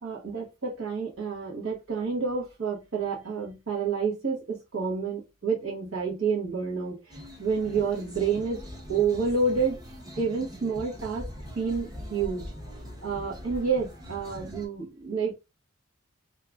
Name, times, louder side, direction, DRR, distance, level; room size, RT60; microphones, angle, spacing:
voice 1, 0.0-8.6 8.9-9.8 10.2-11.2 11.5-12.4 13.0-15.3, right 5 dB, 90° right, 1.2 m, -29 dB
sound 1, 7.1-14.7, equal, 20° right, 0.7 m, -42 dB
2.8 x 2.4 x 3.5 m
head